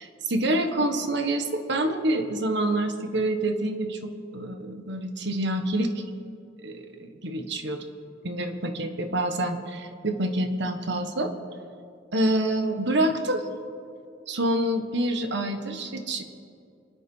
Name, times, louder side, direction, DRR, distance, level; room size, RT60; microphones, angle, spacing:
voice 1, 0.0-6.0 6.6-7.9 8.2-11.3 12.1-13.5 14.3-16.2, right 1 dB, 65° right, 7 dB, 1.4 m, -27 dB
26.0 x 9.9 x 5.5 m, 2.4 s
head